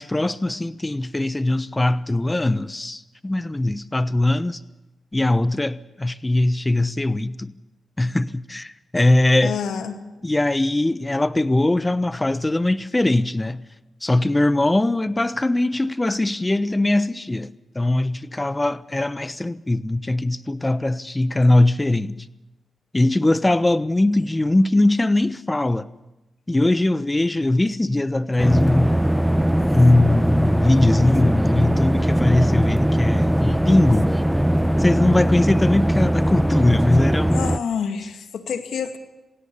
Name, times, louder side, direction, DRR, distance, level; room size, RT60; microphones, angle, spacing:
voice 1, 0.0-4.6 5.1-7.5 8.0-9.6 10.2-13.6 14.0-22.3 22.9-25.9 26.5-28.9 29.7-34.2 34.8-37.5, left 2 dB, 20° left, 1.1 m, -21 dB
voice 2, 9.4-9.9 37.3-39.0, left 7 dB, 80° left, 2.1 m, -28 dB
sound 1, 28.4-37.6, equal, 5° right, 0.8 m, -20 dB
26.5 x 17.0 x 7.0 m
cardioid pair, 55°, 0 cm